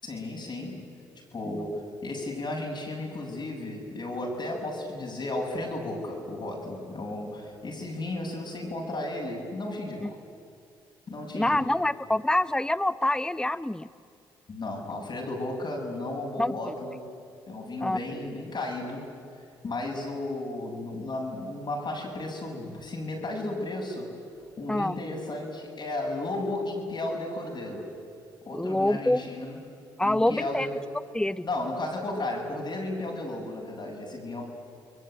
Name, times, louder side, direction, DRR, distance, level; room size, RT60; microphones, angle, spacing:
voice 1, 0.0-0.9 1.3-10.2 11.1-11.7 14.5-17.0 17.5-19.1 19.6-24.2 24.6-27.9 28.5-29.6 30.0-30.7 31.4-34.4, left 2 dB, 45° left, 0 dB, 7.6 m, -34 dB
voice 2, 1.5-1.8 10.0-10.1 11.3-13.9 16.4-16.7 17.8-18.0 24.7-25.0 28.5-29.2 30.0-30.7 31.1-31.4, left 1 dB, 5° left, 16 dB, 0.8 m, -26 dB
29.0 x 21.5 x 9.3 m, 2.5 s
hypercardioid pair, 50°, 10 cm